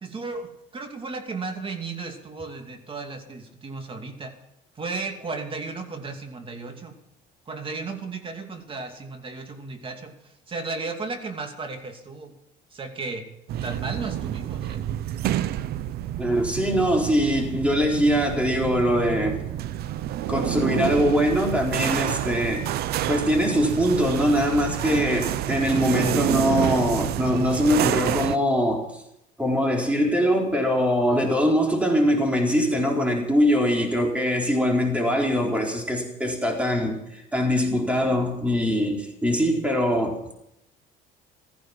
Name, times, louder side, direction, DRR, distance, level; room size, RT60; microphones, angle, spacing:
voice 1, 0.0-4.3 4.7-7.0 7.5-12.3 12.7-13.3 13.6-14.8 31.0-31.3, right 3 dB, 30° right, 5 dB, 2.6 m, -35 dB
sound 1, 13.5-28.4, right 12 dB, 65° right, 0.7 m, -28 dB
voice 2, 16.2-19.4 20.3-22.7 23.1-29.0 29.4-40.2, equal, 5° right, 1 dB, 4.1 m, -22 dB
16.0 x 14.5 x 6.0 m, 0.81 s
cardioid pair, 110°, 18 cm